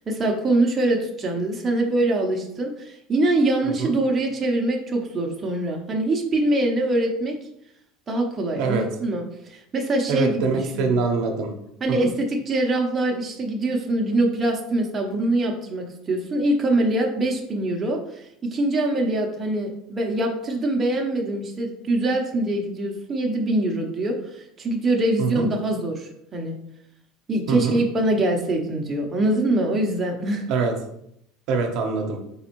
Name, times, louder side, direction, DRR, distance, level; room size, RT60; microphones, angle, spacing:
voice 1, 0.0-7.3 8.1-10.9 11.8-26.6 27.3-30.5, right 1 dB, 25° right, 1 dB, 0.6 m, -24 dB
voice 2, 10.1-11.5 12.0-12.1 25.2-25.5 27.5-27.8 30.5-30.7 31.5-32.2, right 4 dB, 60° right, 3 dB, 0.7 m, -24 dB
4.1 x 3.5 x 2.9 m, 0.76 s
supercardioid pair, 125°, 0 cm